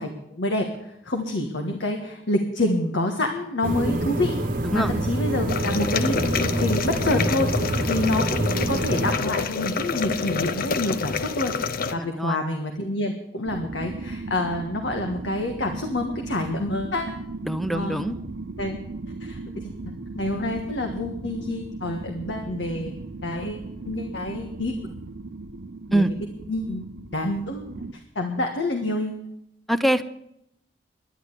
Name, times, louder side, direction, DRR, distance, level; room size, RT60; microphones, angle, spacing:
voice 1, 0.0-11.5 11.9-17.1 17.7-18.1 18.6-18.8 19.2-19.7 20.1-22.9 23.2-24.7 25.9-26.0 26.5-26.9 27.1-27.7 28.1-29.2, left 2 dB, 85° left, 3 dB, 1.5 m, -27 dB
sound 1, 3.6-9.1, right 1 dB, 50° right, 1.1 m, -26 dB
sound 2, 5.5-12.0, left 5 dB, 55° left, 0.7 m, -28 dB
voice 2, 12.0-12.4 17.4-18.2 25.9-26.1 29.7-30.0, right 1 dB, ahead, 12 dB, 0.6 m, -24 dB
sound 3, 13.5-27.9, right 3 dB, 90° right, 0.8 m, -37 dB
11.0 x 11.0 x 8.2 m, 0.79 s
head